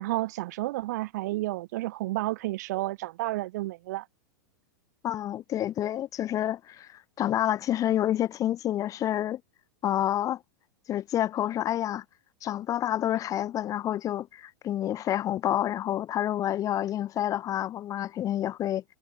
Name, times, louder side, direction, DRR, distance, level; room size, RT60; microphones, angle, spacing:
voice 1, 0.0-4.1, right 18 dB, 60° right, 2.0 m, -31 dB
voice 2, 5.0-9.4 9.8-10.4 10.9-12.0 12.4-18.8, left 12 dB, 35° left, 3.1 m, -28 dB
hypercardioid pair, 105°, 10 cm